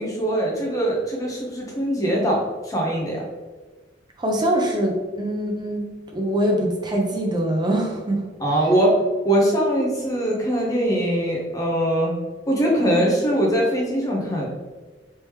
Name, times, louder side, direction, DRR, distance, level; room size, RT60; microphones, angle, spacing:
voice 1, 0.0-3.3 8.4-9.0 9.2-12.1 12.5-14.5, right 1 dB, 20° left, -2 dB, 0.8 m, -22 dB
voice 2, 4.2-5.9 6.1-8.2, right 1 dB, 25° right, 0 dB, 0.6 m, -23 dB
3.4 x 2.9 x 3.1 m, 1.3 s
head